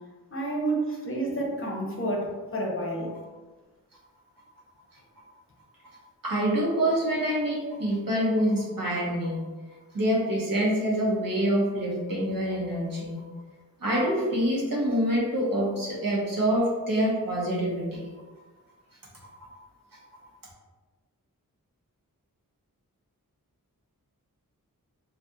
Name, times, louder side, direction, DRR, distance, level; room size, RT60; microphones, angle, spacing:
voice 1, 0.3-3.1, right 1 dB, 40° left, -2 dB, 0.6 m, -29 dB
voice 2, 6.2-9.4 9.9-13.2 13.8-18.0, equal, 70° right, -4 dB, 0.9 m, -26 dB
2.4 x 2.3 x 2.6 m, 1.3 s
wide cardioid pair, 45°, 35 cm